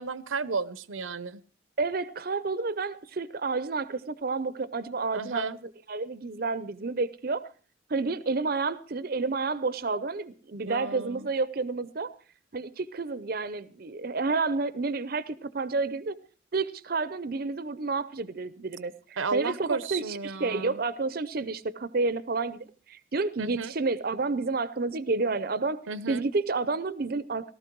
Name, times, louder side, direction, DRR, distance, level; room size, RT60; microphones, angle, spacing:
voice 1, 0.0-1.4 5.1-5.6 10.6-11.3 19.2-20.8 23.4-23.7 25.9-26.2, right 4 dB, 85° right, 0.8 m, -33 dB
voice 2, 1.8-5.5 5.9-7.4 7.9-12.1 12.5-16.2 16.5-25.8 26.1-27.5, right 3 dB, 50° right, 0.6 m, -30 dB
18.0 x 13.0 x 4.6 m
head